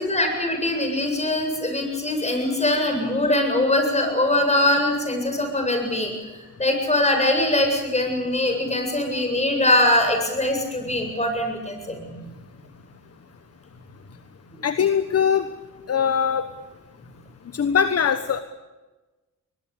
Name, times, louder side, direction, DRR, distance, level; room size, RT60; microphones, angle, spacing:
voice 1, 0.0-6.1 6.6-12.2 14.5-14.6, left 1 dB, 20° left, 4 dB, 7.9 m, -22 dB
voice 2, 14.6-15.5 15.9-16.5 17.5-18.4, left 7 dB, 45° left, 10 dB, 1.3 m, -21 dB
22.0 x 21.0 x 8.6 m, 1.2 s
cardioid pair, 85°, 33 cm